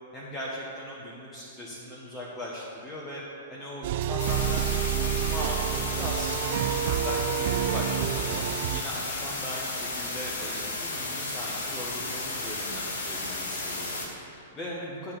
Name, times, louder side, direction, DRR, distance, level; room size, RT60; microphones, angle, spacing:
voice 1, 0.1-3.2 3.5-15.1, left 1 dB, 15° left, -6 dB, 1.5 m, -39 dB
sound 1, 3.8-8.8, right 10 dB, 50° right, 0.3 m, -28 dB
sound 2, 4.2-14.1, left 2 dB, 55° left, 2.0 m, -33 dB
9.9 x 4.5 x 7.5 m, 3.0 s
figure-of-eight pair, 105°, 0 cm